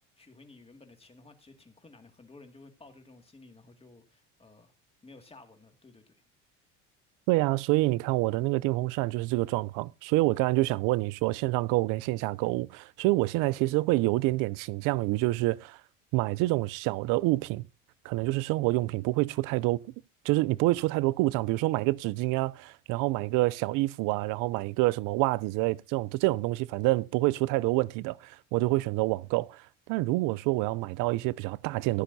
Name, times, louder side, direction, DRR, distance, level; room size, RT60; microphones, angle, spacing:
voice 1, 0.2-4.7 5.0-6.2, left 3 dB, 15° left, 2.2 m, -54 dB
voice 2, 7.3-15.8 16.1-17.7 18.0-19.8 20.2-29.6 29.9-32.0, right 20 dB, 60° right, 0.5 m, -27 dB
14.5 x 10.0 x 2.7 m
supercardioid pair, 85°, 36 cm